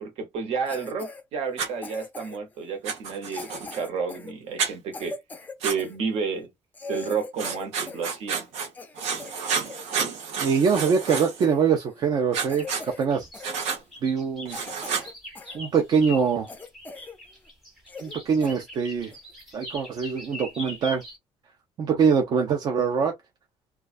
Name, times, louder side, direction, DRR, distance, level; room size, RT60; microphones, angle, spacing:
voice 1, 0.0-5.2 5.6-6.5 6.9-8.5, right 5 dB, 65° right, 1.0 m, -31 dB
Cough, 0.7-1.2 1.8-2.5 3.2-6.0 6.4-6.5 6.7-8.1 8.4-9.8 10.3-10.4 10.7-11.6 11.9-12.1 12.5-13.1 13.3-13.5 14.0-14.1 14.5-15.6 16.0-16.1 16.5-17.2 17.5-17.6 17.9-18.2 18.4-18.6 19.1-19.3, left 3 dB, 15° left, 0.4 m, -41 dB
Writing, 1.6-1.7 2.8-3.8 4.6-4.7 5.6-5.8 7.4-8.7 9.0-11.4 12.3-12.8 13.4-13.8 14.5-15.1, right 6 dB, 85° right, 0.8 m, -30 dB
voice 2, 10.4-13.4 14.0-14.6 15.5-16.5 18.0-19.1 19.5-21.0 21.8-23.1, right 6 dB, 40° right, 0.4 m, -23 dB
sound 1, 12.6-21.2, left 2 dB, ahead, 0.9 m, -42 dB
2.2 x 2.2 x 2.4 m
cardioid pair, 165°, 11 cm